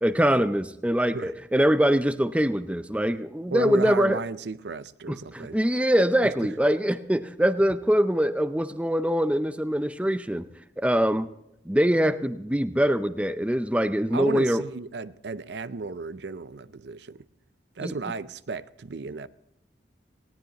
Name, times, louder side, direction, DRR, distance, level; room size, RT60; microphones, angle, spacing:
voice 1, 0.0-4.2 5.1-10.5 10.8-11.3 11.7-14.6 17.8-17.9, equal, 5° right, 0.5 m, -23 dB
voice 2, 3.5-5.6 14.1-17.2 17.8-19.3, right 4 dB, 70° right, 0.5 m, -34 dB
19.5 x 17.5 x 2.9 m
head